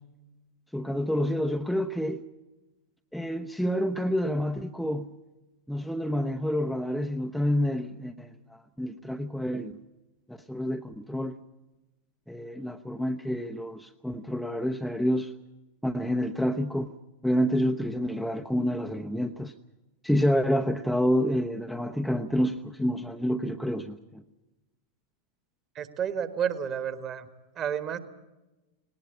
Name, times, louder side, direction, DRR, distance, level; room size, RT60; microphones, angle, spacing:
voice 1, 0.7-2.2 3.1-5.1 5.7-9.7 10.3-11.4 12.3-15.3 15.8-16.9 17.2-19.5 20.0-24.2, equal, ahead, 4 dB, 0.8 m, -28 dB
voice 2, 25.7-27.3 27.5-28.0, right 8 dB, 30° right, 11 dB, 1.7 m, -30 dB
19.0 x 19.0 x 8.6 m, 1.0 s
figure-of-eight pair, 90°, 0 cm